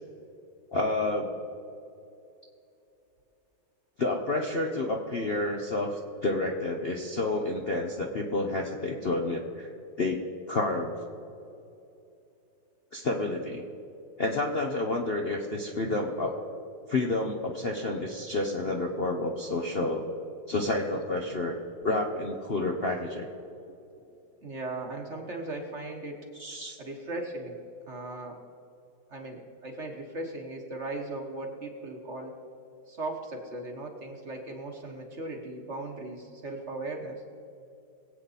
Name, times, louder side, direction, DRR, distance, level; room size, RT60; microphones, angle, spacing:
voice 1, 0.7-1.3 4.0-9.7 10.0-10.2 10.5-11.0 12.9-13.6 14.2-16.3 16.9-20.1 20.5-21.5 21.8-23.3 26.4-26.8, left 2 dB, 45° left, 1 dB, 0.8 m, -29 dB
voice 2, 24.4-26.2 26.8-27.6 27.9-28.4 29.1-32.4 32.9-37.2, right 2 dB, 40° right, 2 dB, 1.5 m, -38 dB
21.0 x 8.4 x 4.1 m, 2.7 s
omnidirectional pair, 2.0 m